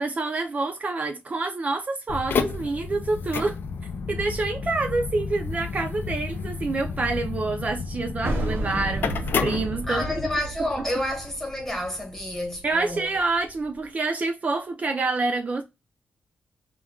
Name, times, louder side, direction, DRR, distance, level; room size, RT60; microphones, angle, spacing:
voice 1, 0.0-3.6 4.1-10.0 12.6-15.6, right 3 dB, 40° right, 0.4 m, -27 dB
sound 1, 2.1-10.4, left 5 dB, 60° left, 0.4 m, -31 dB
sound 2, 8.2-13.5, right 2 dB, 70° right, 0.8 m, -33 dB
voice 2, 9.9-13.1, left 1 dB, 10° left, 1.1 m, -29 dB
2.2 x 2.2 x 3.5 m
wide cardioid pair, 110°, 4 cm